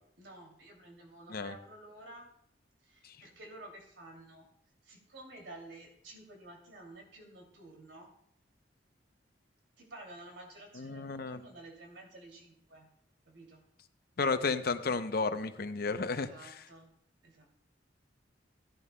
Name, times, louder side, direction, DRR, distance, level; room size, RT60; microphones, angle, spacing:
voice 1, 0.2-2.3 2.8-4.5 4.8-8.1 9.8-12.9 13.2-13.6 16.1-16.9 17.2-17.5, right 2 dB, 85° right, 2 dB, 2.6 m, -51 dB
voice 2, 10.8-11.4 14.2-16.3, left 4 dB, 55° left, 10 dB, 0.6 m, -32 dB
16.0 x 11.0 x 2.2 m, 0.73 s
head